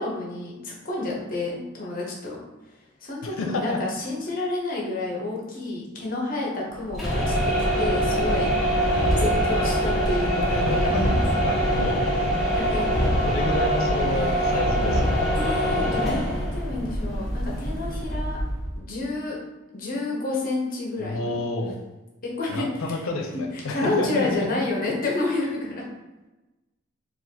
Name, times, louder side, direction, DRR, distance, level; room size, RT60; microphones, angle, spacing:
voice 1, 0.0-2.4 3.0-8.5 9.2-11.2 12.5-12.9 15.3-18.4 18.8-19.4 19.7-21.4 22.2-23.1 23.5-25.8, left 2 dB, 45° left, -2 dB, 0.8 m, -29 dB
voice 2, 3.2-3.8 10.5-11.2 11.4-12.0 13.2-15.0 21.0-21.8 22.5-24.5, left 2 dB, 80° left, 3 dB, 0.5 m, -29 dB
sound 1, 6.9-18.8, equal, ahead, 0.8 m, -23 dB
4.0 x 2.4 x 2.7 m, 1.1 s
head